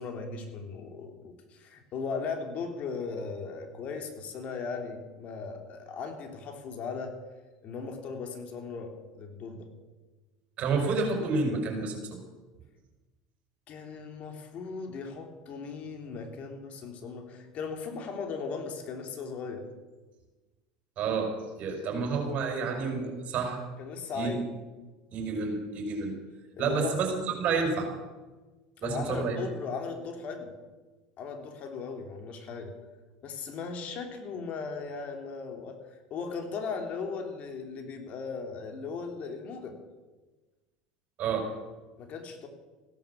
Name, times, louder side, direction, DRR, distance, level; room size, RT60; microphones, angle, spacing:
voice 1, 0.0-7.1 7.6-9.7 13.7-19.6 23.8-24.4 26.6-27.0 28.8-30.5 31.2-32.7 33.2-35.8 36.1-39.8 42.0-42.5, left 5 dB, 50° left, 4 dB, 3.2 m, -37 dB
voice 2, 10.6-12.2 21.0-21.3 21.6-23.6 24.1-24.3 25.1-26.2 26.6-27.1 27.4-27.9 28.8-29.4 41.2-41.5, right 4 dB, 50° right, 3 dB, 5.4 m, -29 dB
16.0 x 11.5 x 7.2 m, 1.2 s
hypercardioid pair, 90°, 3 cm